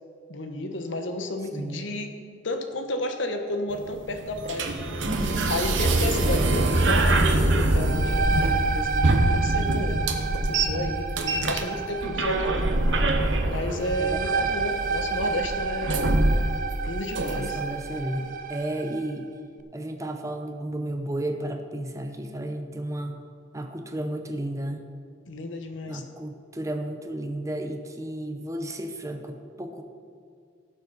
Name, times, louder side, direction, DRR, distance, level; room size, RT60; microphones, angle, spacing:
voice 1, 0.3-2.1 2.4-5.0 5.5-12.7 13.5-16.0 16.9-17.6 25.3-26.0, left 1 dB, 80° left, 6 dB, 1.1 m, -32 dB
voice 2, 1.5-1.9 5.1-5.5 14.0-14.6 17.3-19.3 19.7-23.2 23.5-24.8 25.9-29.8, right 1 dB, 15° right, 5 dB, 0.8 m, -33 dB
sound 1, 3.7-17.7, right 2 dB, 75° right, 1.1 m, -24 dB
sound 2, 7.6-19.1, right 5 dB, 45° right, 0.5 m, -31 dB
17.5 x 7.4 x 4.1 m, 2.2 s
head